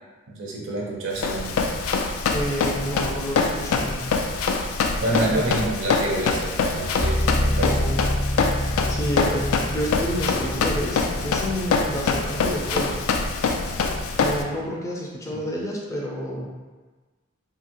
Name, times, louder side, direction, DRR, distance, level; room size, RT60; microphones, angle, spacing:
voice 1, 0.3-1.6 5.0-7.9, right 1 dB, 65° right, -2 dB, 0.5 m, -27 dB
Run, 1.2-14.4, left 4 dB, 85° left, 0.3 m, -25 dB
voice 2, 2.3-4.1 7.6-8.0 8.9-13.0 14.2-16.5, equal, 15° left, -2 dB, 0.4 m, -29 dB
sound 1, 7.0-14.7, left 1 dB, 40° left, 0.8 m, -29 dB
2.8 x 2.7 x 2.5 m, 1.3 s
head